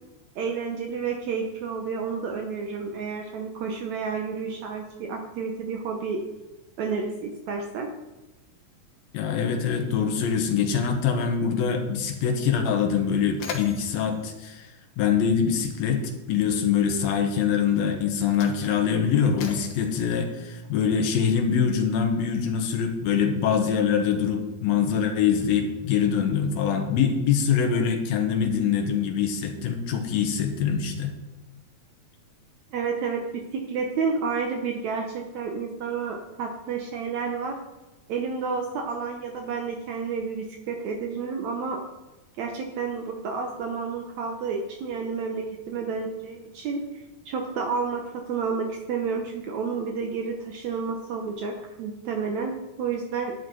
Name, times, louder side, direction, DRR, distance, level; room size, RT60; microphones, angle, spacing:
voice 1, 0.4-6.2 6.8-7.9 32.7-37.6 38.1-41.8 42.4-53.3, right 5 dB, 70° right, 3 dB, 1.9 m, -30 dB
voice 2, 9.1-14.7 15.0-31.1, left 7 dB, 80° left, 4 dB, 3.0 m, -24 dB
Mechanisms, 13.3-15.6 16.6-16.8 17.6-21.2, left 6 dB, 65° left, 2.5 m, -42 dB
11.5 x 9.9 x 4.6 m, 1.1 s
omnidirectional pair, 4.2 m